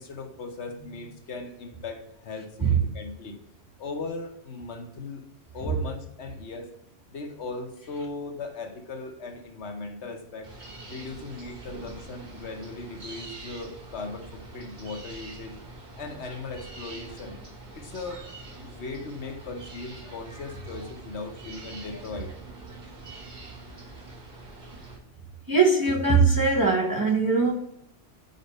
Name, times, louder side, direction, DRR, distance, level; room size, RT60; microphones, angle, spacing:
voice 1, 0.0-3.4 3.8-5.3 5.5-6.7 7.1-10.5 10.9-15.5 16.0-17.4 17.7-18.2 18.6-22.3 24.8-24.9, left 3 dB, 65° left, 4 dB, 1.1 m, -38 dB
sound 1, 10.4-25.0, right 2 dB, 40° right, 1.4 m, -44 dB
voice 2, 25.5-27.5, right 4 dB, 20° right, -1 dB, 0.7 m, -21 dB
5.4 x 4.2 x 5.3 m, 0.73 s
omnidirectional pair, 1.2 m